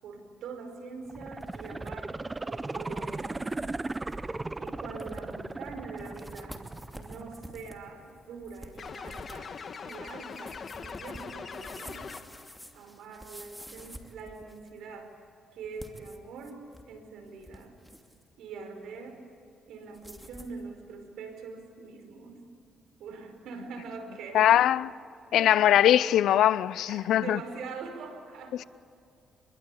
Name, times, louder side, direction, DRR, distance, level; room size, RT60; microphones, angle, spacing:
voice 1, 0.0-2.2 2.4-3.5 4.6-6.6 6.9-9.6 9.8-12.0 12.7-15.1 15.5-16.6 16.8-17.8 18.4-19.2 19.7-22.4 23.0-24.6 25.3-25.9 26.8-28.6, right 4 dB, 80° right, 5.1 m, -43 dB
sound 1, 1.1-1.9 2.2-2.3 2.9-3.1 3.6-3.7 3.9-4.2 4.7-4.8 5.0-5.5 6.0-14.8 15.6-16.9 17.3-18.2 19.9-20.6, equal, 5° right, 2.7 m, -49 dB
sound 2, 1.1-8.0 8.4-8.5, right 2 dB, 20° right, 0.7 m, -37 dB
sound 3, 8.8-12.6, left 5 dB, 45° left, 1.6 m, -41 dB
voice 2, 24.3-24.9 25.3-27.4, left 11 dB, 80° left, 0.6 m, -21 dB
26.5 x 23.0 x 8.6 m
cardioid pair, 90°, 0 cm